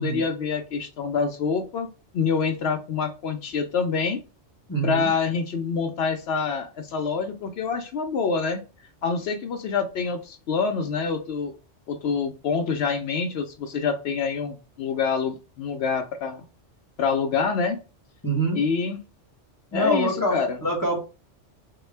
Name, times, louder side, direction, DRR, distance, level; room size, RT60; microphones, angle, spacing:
voice 1, 0.0-1.9 2.1-4.2 4.8-8.6 9.0-11.6 11.9-16.4 17.0-17.8 18.5-19.0 19.7-20.6, left 5 dB, 65° left, 7 dB, 0.7 m, -26 dB
voice 2, 4.7-5.1 18.2-18.6 19.7-20.4 20.6-21.0, right 1 dB, 20° left, -3 dB, 1.0 m, -24 dB
3.7 x 2.2 x 3.2 m, 0.32 s
omnidirectional pair, 1.2 m